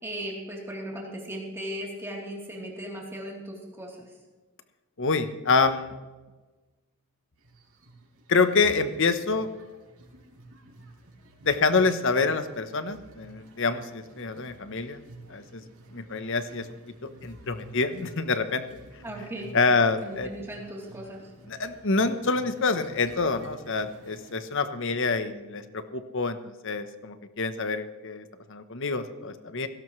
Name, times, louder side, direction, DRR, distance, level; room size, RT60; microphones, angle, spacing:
voice 1, 0.0-4.0 19.0-19.6 20.0-21.2, right 1 dB, 10° right, -3 dB, 3.3 m, -37 dB
voice 2, 5.0-5.9 8.3-9.5 11.4-15.0 15.3-15.6 15.9-16.7 17.2-18.6 19.5-20.3 21.5-29.7, left 4 dB, 55° left, 10 dB, 1.0 m, -26 dB
sound 1, 7.4-24.4, right 2 dB, 75° right, 4.2 m, -51 dB
17.0 x 17.0 x 3.2 m, 1.2 s
head